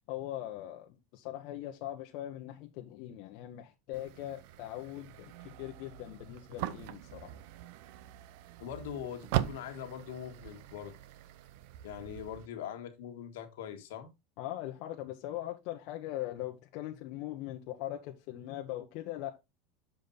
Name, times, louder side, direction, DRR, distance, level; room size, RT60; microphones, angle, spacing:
voice 1, 0.1-7.4 14.4-19.3, left 13 dB, 60° left, 0.9 m, -41 dB
sound 1, 3.9-12.5, right 13 dB, 65° right, 0.6 m, -41 dB
voice 2, 8.6-11.0 11.8-14.1, left 9 dB, 85° left, 1.6 m, -42 dB
7.1 x 5.1 x 4.0 m
supercardioid pair, 130°, 0 cm